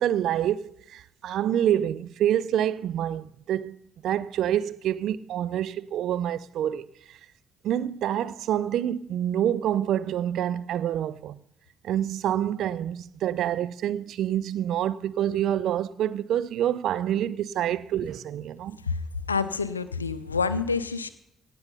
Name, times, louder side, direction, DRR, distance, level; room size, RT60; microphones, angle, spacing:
voice 1, 0.0-3.8 4.0-7.2 7.6-11.4 11.8-18.8, right 10 dB, 60° right, 0.4 m, -27 dB
voice 2, 18.8-21.1, left 5 dB, 85° left, 0.4 m, -28 dB
17.5 x 6.9 x 5.4 m
figure-of-eight pair, 45°, 0 cm